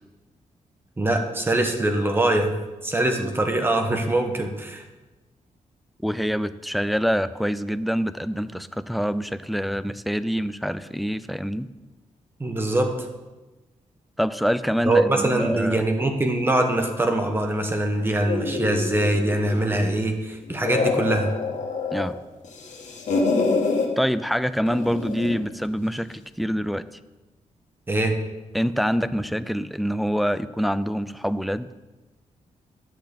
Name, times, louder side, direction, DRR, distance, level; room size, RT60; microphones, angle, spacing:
voice 1, 1.0-2.5 2.8-4.8 12.4-12.9 14.8-21.3 27.9-28.2, right 1 dB, 15° right, 4 dB, 1.3 m, -23 dB
voice 2, 6.0-11.7 14.2-15.9 21.9-22.2 24.0-26.8 28.5-31.7, equal, ahead, 13 dB, 0.3 m, -25 dB
sound 1, 18.2-20.0 20.4-22.1 22.4-23.9 24.7-25.4, left 4 dB, 65° left, 1.8 m, -26 dB
11.0 x 6.0 x 8.6 m, 1.1 s
wide cardioid pair, 170°, 13 cm